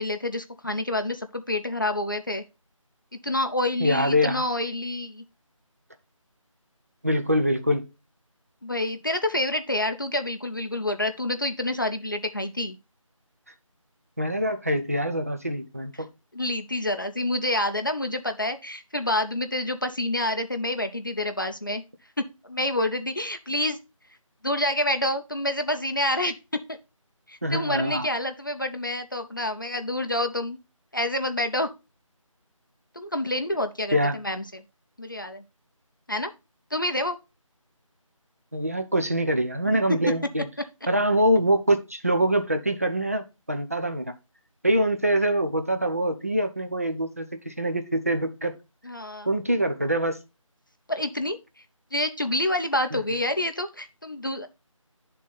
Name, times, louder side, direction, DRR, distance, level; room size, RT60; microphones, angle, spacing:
voice 1, 0.0-2.4 3.2-5.2 8.6-12.8 16.3-21.8 22.2-23.8 24.4-26.8 27.3-30.6 30.9-31.7 33.0-34.6 35.0-35.4 36.1-36.3 36.7-37.2 39.9-40.0 48.8-49.3 50.9-51.4 51.9-54.5, left 1 dB, 35° left, 0.5 m, -28 dB
voice 2, 3.8-4.4 7.0-7.8 14.2-16.1 27.4-28.1 33.9-34.2 38.5-40.5 40.9-44.1 44.6-48.5 49.3-50.2 52.9-53.0, equal, 25° right, 0.5 m, -24 dB
10.0 x 3.7 x 4.1 m
figure-of-eight pair, 165°, 17 cm